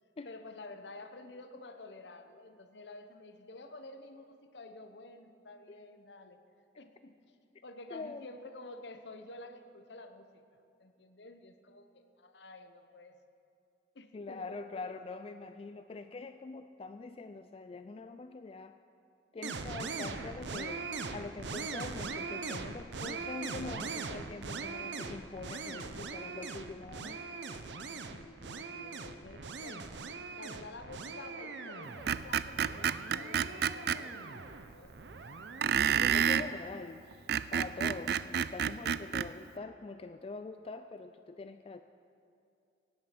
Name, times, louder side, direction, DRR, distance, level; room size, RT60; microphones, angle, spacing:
voice 1, 0.2-6.4 6.8-7.2 7.6-10.4 10.8-13.2 13.9-14.9 28.1-30.0 30.4-35.0, left 2 dB, 75° left, 8 dB, 1.0 m, -50 dB
voice 2, 7.9-8.3 14.1-18.8 19.3-27.2 35.6-37.0 37.5-41.8, left 3 dB, 35° left, 9 dB, 0.3 m, -44 dB
sound 1, 19.4-36.4, right 4 dB, 80° right, 0.8 m, -41 dB
Screech, 32.1-34.0 35.6-36.5 37.1-39.3, right 8 dB, 60° right, 0.4 m, -29 dB
17.5 x 9.6 x 6.0 m, 2.6 s
head